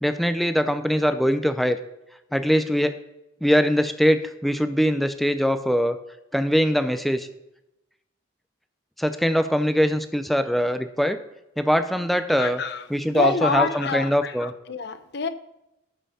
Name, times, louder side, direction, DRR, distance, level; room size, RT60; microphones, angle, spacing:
voice 1, 0.0-1.8 2.3-2.9 3.4-6.0 6.3-7.3 9.0-11.2 11.6-12.6 12.9-14.5, equal, ahead, 10 dB, 0.5 m, -22 dB
voice 2, 12.4-15.3, left 4 dB, 60° left, 11 dB, 0.7 m, -27 dB
12.5 x 5.6 x 4.2 m, 0.89 s
head